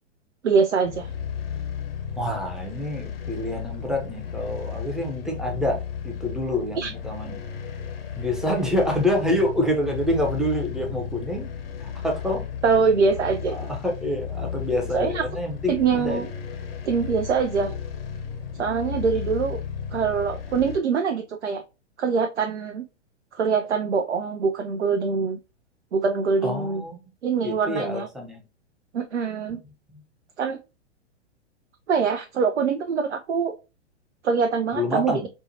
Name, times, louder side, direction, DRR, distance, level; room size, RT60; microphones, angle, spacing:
voice 1, 0.4-1.1 6.8-6.9 12.6-13.6 14.9-15.2 15.7-16.3 16.8-17.7 18.6-19.6 19.9-21.6 22.0-22.8 23.3-25.4 25.9-26.8 27.2-28.1 28.9-29.6 30.4-30.6 31.9-33.5 34.2-35.1, right 5 dB, 80° right, 0.5 m, -23 dB
sound 1, 0.8-20.8, left 7 dB, 55° left, 0.7 m, -34 dB
voice 2, 2.2-7.4 8.2-11.5 11.8-12.4 13.5-16.3 26.4-27.0 27.4-28.4 34.7-35.3, left 1 dB, ahead, 0.5 m, -27 dB
4.4 x 2.1 x 2.7 m
figure-of-eight pair, 105°, 35 cm